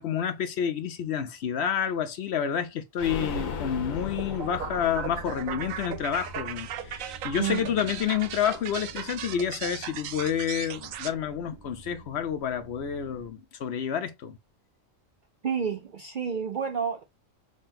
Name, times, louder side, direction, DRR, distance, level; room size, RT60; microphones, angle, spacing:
voice 1, 0.0-14.4, left 8 dB, 65° left, 0.8 m, -29 dB
sound 1, 3.0-8.6 8.9-9.0 9.3-9.4, left 5 dB, 80° left, 1.2 m, -38 dB
sound 2, 3.2-13.3, right 5 dB, 25° right, 0.7 m, -50 dB
sound 3, 4.2-11.1, right 9 dB, 85° right, 1.0 m, -37 dB
voice 2, 7.4-7.8 15.4-17.0, right 7 dB, 60° right, 0.5 m, -30 dB
3.8 x 3.3 x 2.6 m
omnidirectional pair, 1.4 m